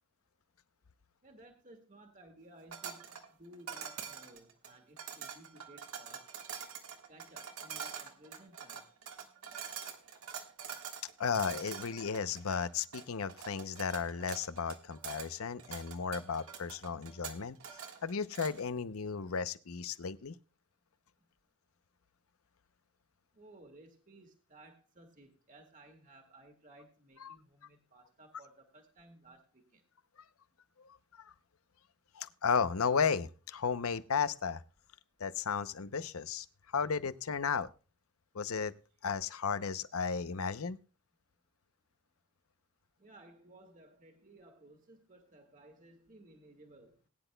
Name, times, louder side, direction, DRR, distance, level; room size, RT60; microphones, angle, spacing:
voice 1, 1.2-6.4 7.1-8.9 23.3-29.8 43.0-47.0, right 1 dB, 35° right, 4 dB, 1.7 m, -58 dB
sound 1, 2.7-18.7, right 7 dB, 80° right, 1.6 m, -45 dB
voice 2, 11.2-17.6 18.0-20.4 27.2-27.4 30.8-30.9 31.2-31.3 32.1-34.6 35.2-36.5 36.7-37.7 38.3-38.7 39.0-40.8, left 6 dB, 85° left, 14 dB, 0.7 m, -34 dB
20.5 x 10.0 x 2.2 m, 0.33 s
head